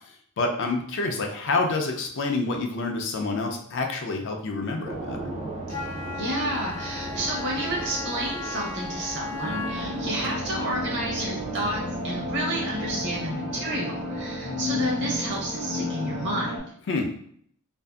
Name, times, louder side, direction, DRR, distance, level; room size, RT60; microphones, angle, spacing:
voice 1, 0.4-5.3 16.9-17.1, left 3 dB, 55° left, 2 dB, 0.4 m, -27 dB
sound 1, 4.8-14.2, right 2 dB, 30° right, 0.4 m, -38 dB
Wind instrument woodwind instrument, 5.7-10.2, left 4 dB, 80° left, 0.8 m, -36 dB
voice 2, 6.2-16.7, right 1 dB, 55° right, -2 dB, 0.8 m, -30 dB
sound 2, 9.4-16.6, left 1 dB, 85° right, 0.9 m, -32 dB
2.6 x 2.4 x 2.3 m, 0.62 s
head